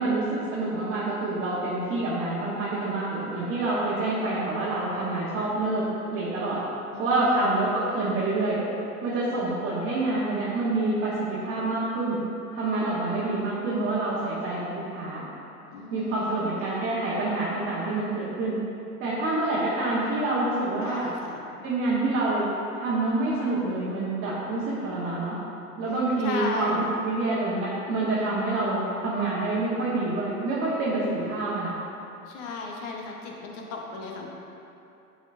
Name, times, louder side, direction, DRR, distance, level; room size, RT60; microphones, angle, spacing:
voice 1, 0.0-5.8 6.1-6.6 7.0-8.6 9.0-12.2 12.5-15.2 15.9-18.6 19.0-21.1 21.6-22.5 22.8-25.4 25.8-31.7, right 2 dB, 30° right, -9 dB, 1.3 m, -27 dB
voice 2, 6.9-7.6 15.7-16.5 20.8-21.4 26.2-26.8 32.3-34.3, left 4 dB, 40° left, 0 dB, 1.0 m, -35 dB
10.0 x 4.3 x 2.6 m, 2.8 s
figure-of-eight pair, 90°, 47 cm